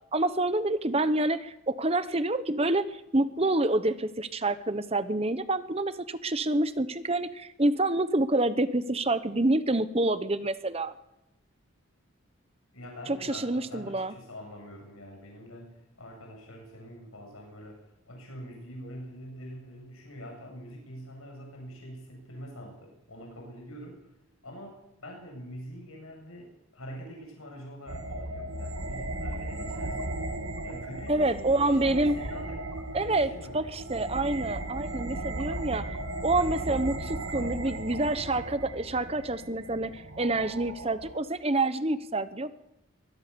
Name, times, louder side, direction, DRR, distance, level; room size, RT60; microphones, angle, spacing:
voice 1, 0.1-10.9 13.1-14.1 31.1-32.1 32.9-42.5, right 2 dB, 30° right, 12 dB, 1.1 m, -27 dB
voice 2, 12.7-24.1 24.4-30.3 30.6-32.6 32.9-33.7, equal, 85° left, 0 dB, 7.7 m, -45 dB
sound 1, 27.9-41.2, right 2 dB, 80° right, 2.4 m, -36 dB
24.0 x 20.0 x 7.0 m, 0.87 s
head